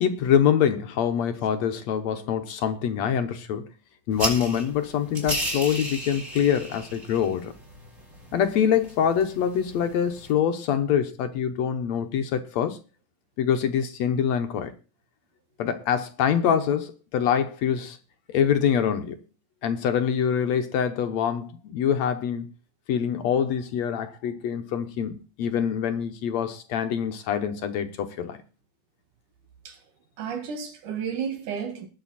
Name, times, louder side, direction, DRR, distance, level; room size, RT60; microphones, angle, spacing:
voice 1, 0.0-3.7 4.1-7.5 8.3-12.8 13.4-14.7 15.6-18.0 18.3-19.2 19.6-22.5 22.9-28.4, left 8 dB, 65° left, 2.1 m, -25 dB
sound 1, 4.1-10.3, right 1 dB, 25° right, 4.8 m, -35 dB
voice 2, 30.2-31.9, right 7 dB, 75° right, 3.4 m, -32 dB
20.0 x 7.0 x 4.2 m
omnidirectional pair, 3.6 m